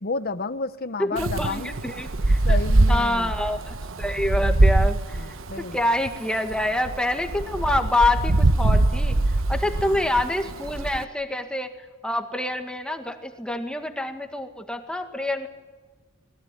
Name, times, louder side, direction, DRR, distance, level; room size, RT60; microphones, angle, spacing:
voice 1, 0.0-1.8 2.4-3.3 5.2-5.8 9.9-10.0, left 3 dB, 50° left, 12 dB, 1.1 m, -31 dB
voice 2, 1.0-2.6 2.9-5.4 5.7-9.2 9.5-11.7 12.0-15.5, left 1 dB, 5° left, 5 dB, 1.9 m, -26 dB
Wind, 1.2-11.0, right 2 dB, 80° right, 1.1 m, -23 dB
26.5 x 20.5 x 9.2 m, 1.2 s
head